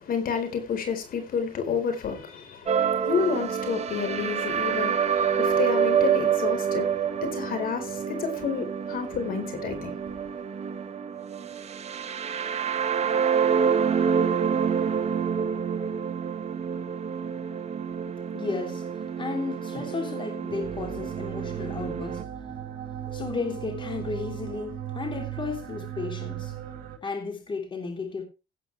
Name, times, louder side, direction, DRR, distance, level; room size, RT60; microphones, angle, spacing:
voice 1, 0.0-9.9, left 6 dB, 55° left, 4.3 m, -30 dB
sound 1, 2.7-22.2, right 7 dB, 40° right, 1.5 m, -27 dB
sound 2, 8.3-27.0, right 10 dB, 60° right, 4.7 m, -41 dB
voice 2, 18.3-22.7 23.1-26.5 27.0-28.2, left 4 dB, 30° left, 3.2 m, -34 dB
17.0 x 9.1 x 3.4 m
cardioid pair, 110°, 17 cm